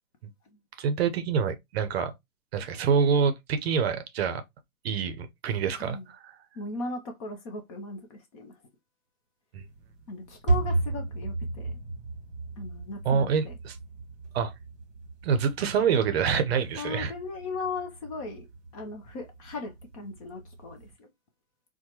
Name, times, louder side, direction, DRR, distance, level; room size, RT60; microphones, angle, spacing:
voice 1, 0.8-2.1 2.5-4.4 4.8-6.4 9.5-9.6 13.0-13.8 14.3-14.5 15.2-17.1, right 6 dB, 45° right, 0.7 m, -26 dB
voice 2, 5.7-6.1 6.5-8.6 10.1-11.8 12.6-13.6 16.8-18.5 18.7-21.1, left 3 dB, 25° left, 0.5 m, -37 dB
sound 1, 9.6-20.9, right 3 dB, 15° right, 1.0 m, -35 dB
4.4 x 2.2 x 2.8 m
figure-of-eight pair, 120°, 44 cm